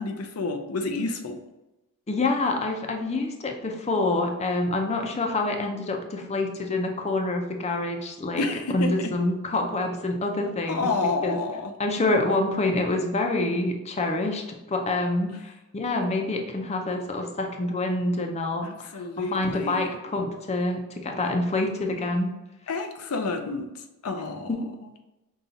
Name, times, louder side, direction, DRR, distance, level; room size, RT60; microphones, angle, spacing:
voice 1, 0.0-1.4 8.4-9.1 10.7-11.7 18.6-19.9 22.7-23.7 24.0-24.5 24.8-24.9, left 3 dB, 80° left, 6 dB, 0.5 m, -29 dB
voice 2, 2.1-8.4 8.7-10.9 11.2-11.4 11.8-18.7 18.9-22.3 24.5-24.6, left 2 dB, 30° left, 3 dB, 0.5 m, -27 dB
5.5 x 2.4 x 3.9 m, 0.99 s
head